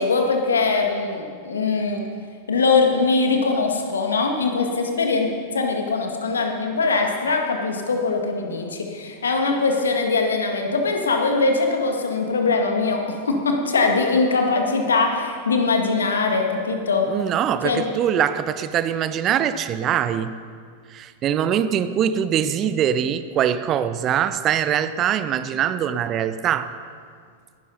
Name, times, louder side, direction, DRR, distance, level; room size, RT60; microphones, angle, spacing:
voice 1, 0.0-2.0 2.5-17.1 17.6-17.9, left 4 dB, 70° left, 3 dB, 1.8 m, -22 dB
voice 2, 17.1-20.3 20.9-26.7, right 9 dB, 30° right, 13 dB, 0.6 m, -23 dB
19.5 x 12.5 x 4.0 m, 2.1 s
figure-of-eight pair, 90°, 0 cm